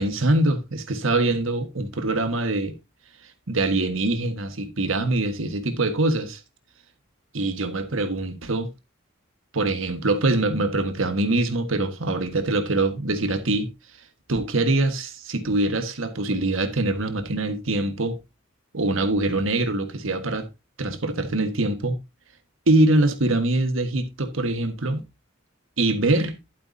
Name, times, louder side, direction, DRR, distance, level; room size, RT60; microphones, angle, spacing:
voice 1, 0.0-2.7 3.5-6.4 7.3-8.7 9.5-13.7 14.3-18.2 18.7-20.5 20.8-22.0 22.7-25.0 25.8-26.4, right 2 dB, 75° right, 1.5 m, -23 dB
11.5 x 8.5 x 2.7 m
head